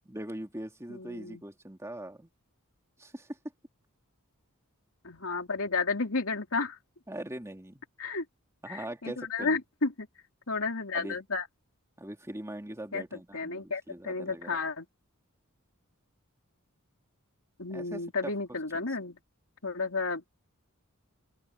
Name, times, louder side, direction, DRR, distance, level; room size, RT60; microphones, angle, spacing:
voice 1, 0.1-2.3 3.0-3.3 7.1-7.8 8.6-9.6 10.9-11.2 12.0-14.6 17.7-18.3 18.7-18.9, right 1 dB, 15° right, 2.9 m, -41 dB
voice 2, 0.9-1.4 5.0-6.8 8.0-8.2 8.7-10.1 10.5-11.5 12.9-14.9 17.6-19.2 19.6-20.2, left 4 dB, 70° left, 3.5 m, -32 dB
head